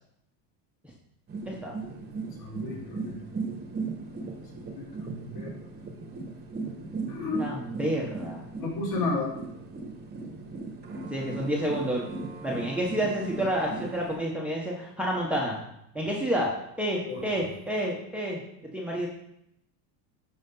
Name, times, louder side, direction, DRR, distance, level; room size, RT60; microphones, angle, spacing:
sound 1, 1.3-14.2, right 3 dB, 20° right, 1.3 m, -37 dB
voice 1, 1.5-1.8 7.4-8.4 11.1-12.0 12.4-15.6 15.9-16.5 16.8-18.4 18.7-19.1, right 1 dB, 5° right, -3 dB, 1.1 m, -29 dB
voice 2, 2.4-3.2 4.6-5.7 6.0-6.1 7.1-7.5 8.6-9.3 17.1-17.2, left 3 dB, 50° left, -4 dB, 3.8 m, -33 dB
11.5 x 5.2 x 3.9 m, 0.78 s
supercardioid pair, 140°, 47 cm